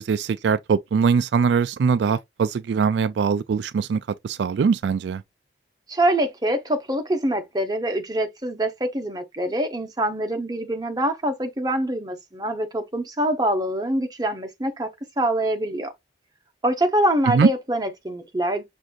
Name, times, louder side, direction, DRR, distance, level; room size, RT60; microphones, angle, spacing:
voice 1, 0.0-5.2 17.3-17.5, right 6 dB, 80° right, 0.3 m, -22 dB
voice 2, 5.9-14.9 15.2-15.9 16.6-18.6, right 1 dB, 20° right, 0.9 m, -24 dB
6.1 x 2.6 x 2.4 m
head